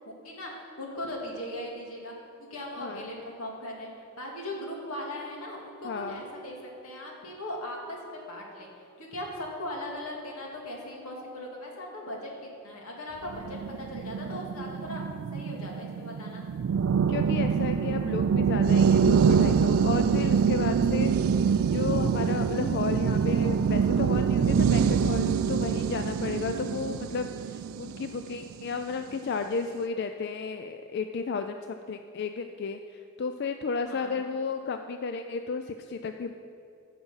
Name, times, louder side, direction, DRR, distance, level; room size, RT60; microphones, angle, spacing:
voice 1, 0.0-2.1 2.5-3.9 4.2-8.7 9.0-12.3 12.6-15.0 15.3-16.4 33.8-34.3, left 1 dB, 90° left, -1 dB, 2.4 m, -38 dB
voice 2, 5.8-6.2 17.1-21.1 21.7-32.8 33.2-36.3, left 5 dB, 50° left, 7 dB, 0.4 m, -33 dB
sound 1, 13.3-28.7, right 6 dB, 70° right, 0.3 m, -25 dB
15.0 x 6.0 x 5.6 m, 2.6 s
head